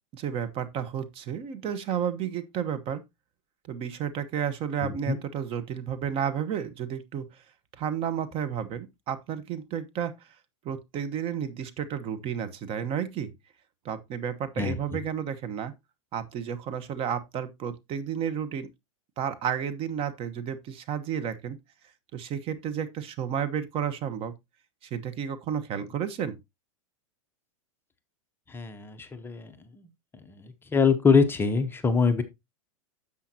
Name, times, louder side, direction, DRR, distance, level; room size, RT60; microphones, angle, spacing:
voice 1, 0.1-3.0 3.7-7.3 7.8-10.1 10.6-13.3 13.8-15.7 16.1-18.7 19.2-21.6 22.1-24.3 24.8-26.4, right 8 dB, 30° right, 1.1 m, -32 dB
voice 2, 4.8-5.2 14.6-15.0 28.5-29.9 30.3-32.2, left 5 dB, 10° left, 0.8 m, -25 dB
10.0 x 7.4 x 2.7 m
supercardioid pair, 140°, 18 cm